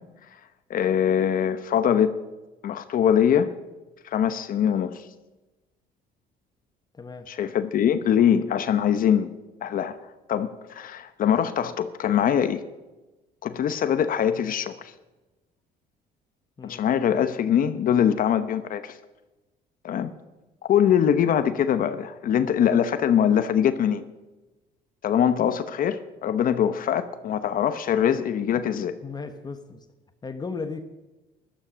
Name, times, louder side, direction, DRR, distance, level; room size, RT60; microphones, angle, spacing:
voice 1, 0.7-2.1 2.6-3.5 4.0-5.0 7.3-9.3 9.6-10.0 10.3-12.6 13.4-14.9 16.6-19.0 19.8-20.1 20.7-24.0 25.0-29.0, left 9 dB, 55° left, 11 dB, 0.9 m, -23 dB
voice 2, 6.9-7.3 16.6-16.8 28.5-28.6 29.0-29.9 30.2-30.8, left 4 dB, 25° left, 8 dB, 1.1 m, -35 dB
14.0 x 13.0 x 6.2 m, 1.1 s
cardioid pair, 110°, 17 cm